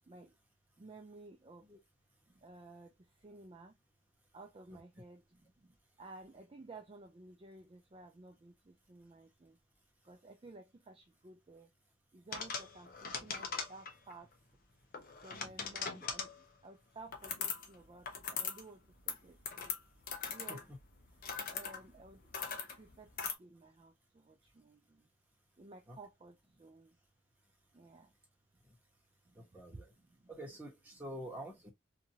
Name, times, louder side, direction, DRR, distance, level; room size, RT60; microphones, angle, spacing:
voice 1, 0.8-1.7 2.3-3.8 4.3-9.6 10.0-11.7 12.1-14.3 15.2-19.8 20.3-20.6 21.1-22.3 22.7-23.1 23.4-25.1 25.6-27.0 27.7-28.1 29.2-29.4 29.7-30.3, right 2 dB, 30° right, 0.4 m, -55 dB
sound 1, 12.3-14.1 14.9-16.4 17.1-17.7 18.0-18.6 18.9-23.3, left 5 dB, 50° left, 0.7 m, -41 dB
voice 2, 29.3-29.9 30.3-31.7, right 1 dB, 10° right, 1.1 m, -47 dB
2.8 x 2.6 x 2.7 m
head